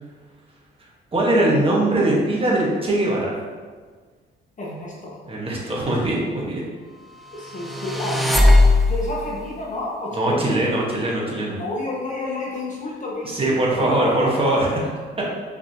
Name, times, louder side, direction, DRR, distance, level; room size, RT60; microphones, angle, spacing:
voice 1, 1.1-3.3 5.3-6.6 10.1-11.6 13.2-14.7, right 1 dB, 30° right, -4 dB, 1.3 m, -21 dB
voice 2, 4.6-5.2 7.3-10.6 11.6-14.1, left 2 dB, 40° left, -4 dB, 1.0 m, -30 dB
sound 1, 7.5-9.3, left 2 dB, ahead, 0.4 m, -17 dB
5.8 x 3.1 x 2.9 m, 1.5 s
cardioid pair, 90°, 20 cm